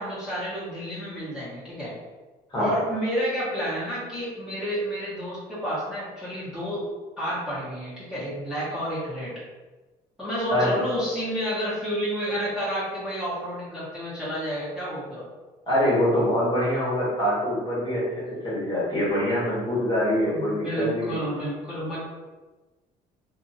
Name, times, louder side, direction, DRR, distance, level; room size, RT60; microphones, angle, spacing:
voice 1, 0.0-1.9 2.5-6.8 7.2-9.3 10.2-15.3 20.2-22.0, equal, 5° right, -11 dB, 1.2 m, -30 dB
voice 2, 15.7-21.2, left 1 dB, 30° left, -7 dB, 1.3 m, -24 dB
2.7 x 2.5 x 2.8 m, 1.2 s
cardioid pair, 110°, 17 cm